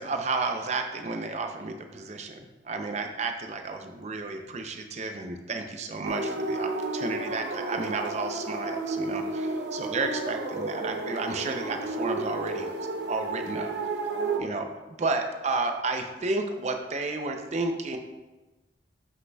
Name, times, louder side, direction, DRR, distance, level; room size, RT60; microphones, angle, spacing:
voice 1, 0.0-12.7 13.1-13.7 14.4-14.7 15.0-18.0, right 3 dB, 40° right, 5 dB, 0.5 m, -32 dB
sound 1, 6.0-14.4, right 2 dB, 75° right, 0.7 m, -32 dB
7.7 x 6.4 x 2.3 m, 1.1 s
head